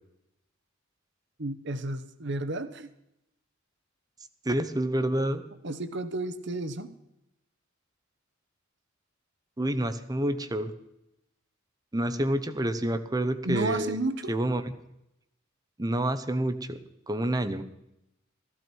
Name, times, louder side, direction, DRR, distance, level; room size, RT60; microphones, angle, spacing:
voice 1, 1.4-2.9 5.6-6.9 13.4-14.3, right 2 dB, 60° right, 11 dB, 1.1 m, -32 dB
voice 2, 4.4-5.4 9.6-10.7 11.9-14.0 14.3-14.7 15.8-16.8 17.1-17.6, right 1 dB, 20° right, 10 dB, 0.8 m, -28 dB
15.5 x 14.0 x 4.5 m, 0.85 s
head